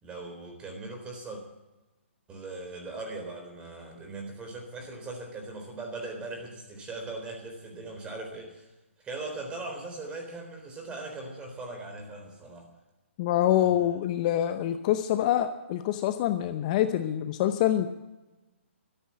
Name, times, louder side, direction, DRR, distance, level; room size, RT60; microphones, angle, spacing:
voice 1, 0.0-1.4 2.3-8.7 9.0-12.7 13.4-14.0, right 2 dB, 15° right, 3 dB, 3.8 m, -40 dB
voice 2, 13.2-17.9, left 12 dB, 35° left, 9 dB, 0.8 m, -25 dB
13.5 x 10.5 x 8.6 m, 1.1 s
hypercardioid pair, 145°, 7 cm